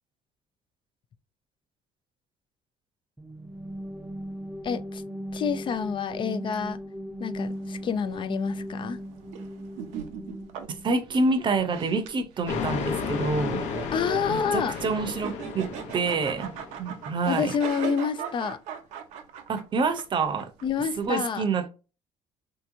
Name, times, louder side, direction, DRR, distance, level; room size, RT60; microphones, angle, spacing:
sound 1, 3.2-11.0, equal, 10° right, 0.6 m, -38 dB
voice 1, 4.6-5.0 5.3-6.8 7.2-9.0 13.9-14.8 17.3-18.6 20.6-21.4, left 6 dB, 45° left, 0.4 m, -28 dB
sound 2, 7.5-21.1, right 8 dB, 80° right, 0.6 m, -40 dB
voice 2, 10.8-13.6 14.3-15.7 15.9-17.5 19.5-20.5 21.0-21.7, right 3 dB, 45° right, 0.7 m, -27 dB
sound 3, 12.5-17.0, left 6 dB, 80° left, 0.8 m, -33 dB
3.3 x 2.9 x 2.6 m
cardioid pair, 90°, 12 cm